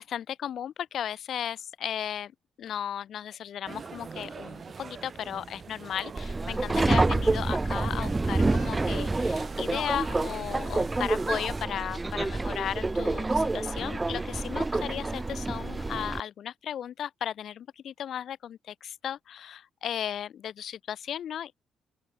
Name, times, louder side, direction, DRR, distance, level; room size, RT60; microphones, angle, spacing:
voice 1, 0.0-2.3 2.6-21.5, left 9 dB, 65° left, 0.6 m, -35 dB
sound 1, 3.6-11.7, right 5 dB, 40° right, 0.8 m, -43 dB
Subway metro underground, 6.2-16.2, right 2 dB, 20° right, 0.3 m, -28 dB
open air
cardioid pair, 90°, 0 cm